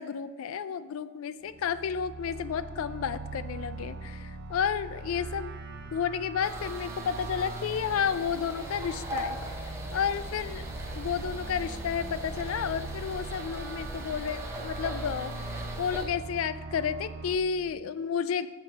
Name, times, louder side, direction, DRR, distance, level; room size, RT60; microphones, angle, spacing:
voice 1, 0.0-5.5 5.9-9.4 9.9-10.7 10.9-18.5, left 7 dB, 70° left, 14 dB, 0.3 m, -31 dB
sound 1, 1.5-17.3, right 3 dB, 50° right, 0.5 m, -41 dB
sound 2, 6.4-16.1, right 1 dB, 10° right, 0.7 m, -39 dB
5.9 x 4.7 x 5.2 m, 1.4 s
head